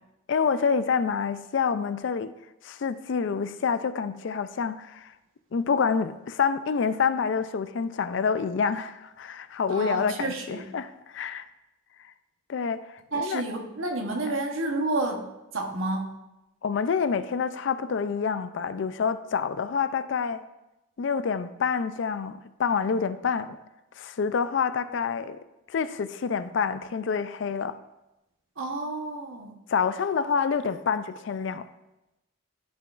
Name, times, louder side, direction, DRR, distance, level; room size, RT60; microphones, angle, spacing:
voice 1, 0.3-2.3 2.6-5.1 5.5-11.5 12.5-12.8 13.1-13.4 16.6-20.4 21.0-23.6 24.0-25.4 25.7-27.8 29.7-31.7, left 6 dB, 65° left, 0.4 m, -27 dB
voice 2, 9.7-10.7 13.1-15.3 15.5-16.1 28.6-29.6, right 2 dB, 80° right, 1.0 m, -30 dB
11.0 x 6.0 x 2.4 m
head